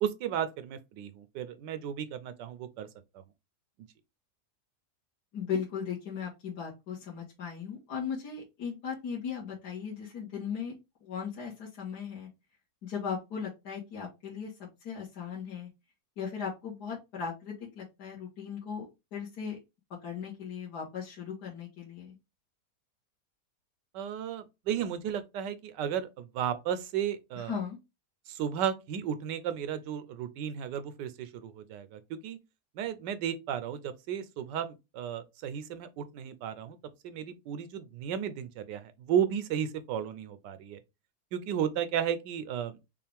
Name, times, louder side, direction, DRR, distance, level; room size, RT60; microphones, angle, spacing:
voice 1, 0.0-2.9 23.9-27.6 28.3-32.4 32.8-36.8 37.0-40.8 41.3-42.8, right 9 dB, 85° right, 1.3 m, -34 dB
voice 2, 5.3-10.7 11.0-12.3 12.8-15.7 16.2-18.9 19.1-19.6 20.0-22.2 27.4-27.8, left 7 dB, 70° left, 1.9 m, -37 dB
5.5 x 2.5 x 3.4 m
omnidirectional pair, 1.8 m